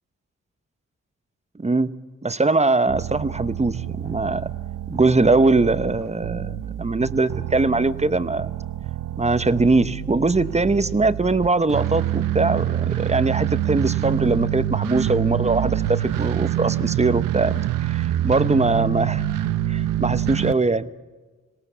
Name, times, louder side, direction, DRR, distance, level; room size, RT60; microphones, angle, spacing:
voice 1, 1.6-1.9 2.2-4.5 4.9-8.5 9.2-19.2 19.7-20.9, right 3 dB, 20° right, 13 dB, 0.9 m, -21 dB
sound 1, 2.9-20.5, right 12 dB, 85° right, 0.6 m, -26 dB
20.5 x 17.5 x 8.2 m, 1.3 s
cardioid pair, 60°, 32 cm